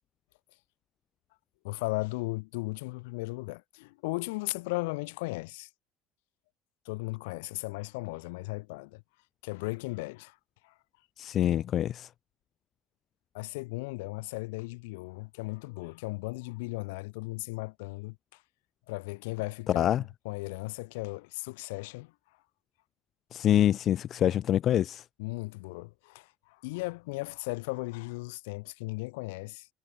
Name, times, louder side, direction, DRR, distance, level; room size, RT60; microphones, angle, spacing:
voice 1, 1.6-5.7 6.8-9.0 9.4-10.4 10.6-10.7 13.3-18.4 18.9-22.1 25.2-29.7, left 24 dB, 85° left, 2.7 m, -36 dB
voice 2, 11.2-12.1 19.8-20.0 23.3-25.0, left 11 dB, 50° left, 0.4 m, -25 dB
supercardioid pair, 90°, 0 cm